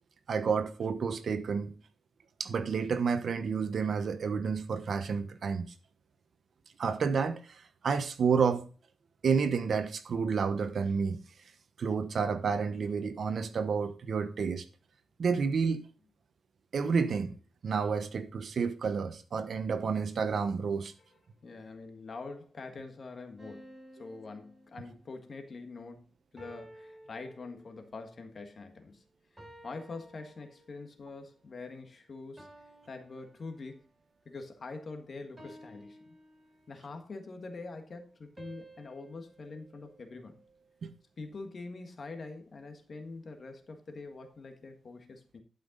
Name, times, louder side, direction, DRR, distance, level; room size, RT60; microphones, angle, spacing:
voice 1, 0.3-1.8 2.4-5.7 6.8-8.6 9.2-11.2 11.8-14.6 15.2-15.8 16.7-17.4 17.6-20.9 40.8-40.9, right 5 dB, 60° right, 0.9 m, -30 dB
voice 2, 21.4-26.1 26.3-29.0 29.6-32.5 32.9-33.8 34.2-36.0 36.7-40.4 41.2-45.4, left 3 dB, 45° left, 1.6 m, -44 dB
sound 1, 23.4-25.3 26.4-28.0 29.4-30.9 32.4-34.0 35.4-37.0 38.4-40.7, right 1 dB, 20° right, 3.3 m, -54 dB
11.5 x 5.7 x 3.9 m
cardioid pair, 100°, 0 cm